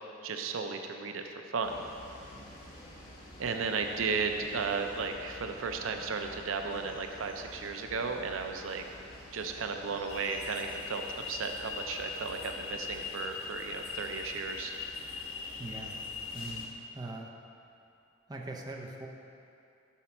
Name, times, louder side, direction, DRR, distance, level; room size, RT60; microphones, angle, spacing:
voice 1, 0.2-1.8 3.4-8.8 9.3-14.8, right 4 dB, 85° right, 5 dB, 0.5 m, -34 dB
sound 1, 1.6-16.7, left 1 dB, 50° left, 1.3 m, -50 dB
sound 2, 10.1-16.7, left 5 dB, 85° left, 0.6 m, -41 dB
voice 2, 15.6-16.0 16.3-17.3 18.3-19.1, right 2 dB, 20° right, 0 dB, 0.6 m, -42 dB
7.1 x 4.3 x 5.9 m, 2.7 s
head